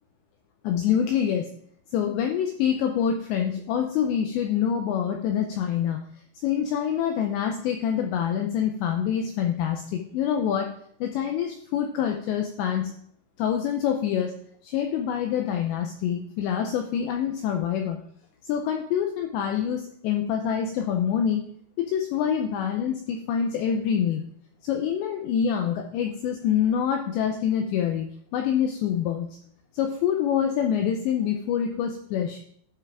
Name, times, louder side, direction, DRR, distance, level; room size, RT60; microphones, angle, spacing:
voice 1, 0.6-1.5 1.9-6.0 6.4-10.7 11.0-12.9 13.4-14.3 14.6-18.0 18.4-21.5 21.8-24.2 24.6-29.3 29.7-32.4, left 8 dB, 85° left, 3 dB, 2.5 m, -26 dB
12.0 x 5.7 x 3.6 m, 0.66 s
omnidirectional pair, 5.8 m